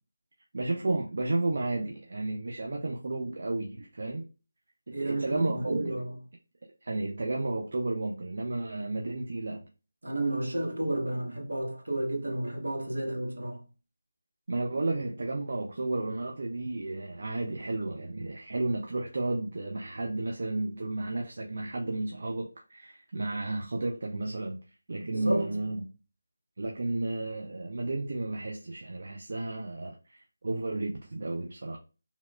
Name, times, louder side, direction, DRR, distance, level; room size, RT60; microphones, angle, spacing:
voice 1, 0.5-4.3 4.9-6.0 6.8-9.7 14.5-24.6 24.9-25.9 26.6-31.8, right 2 dB, 55° right, 0.4 m, -32 dB
voice 2, 4.9-6.1 10.0-13.6 25.0-25.6, right 1 dB, 75° right, 1.0 m, -31 dB
2.8 x 2.0 x 2.4 m
figure-of-eight pair, 160°, 0 cm